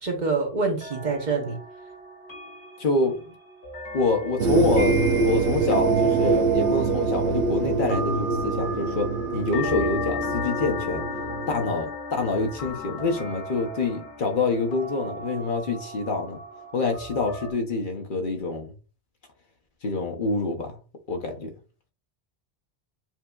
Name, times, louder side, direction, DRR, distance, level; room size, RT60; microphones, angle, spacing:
voice 1, 0.0-1.6, right 4 dB, 45° right, 1.0 m, -26 dB
sound 1, 0.8-17.5, right 1 dB, 80° left, 2.0 m, -33 dB
voice 2, 2.8-3.3 3.9-11.0 11.5-16.4 16.7-18.7 19.8-20.8 21.1-21.5, left 3 dB, 55° left, 0.9 m, -26 dB
sound 2, 4.4-11.5, right 4 dB, 70° right, 0.8 m, -25 dB
7.2 x 2.7 x 2.3 m
omnidirectional pair, 1.1 m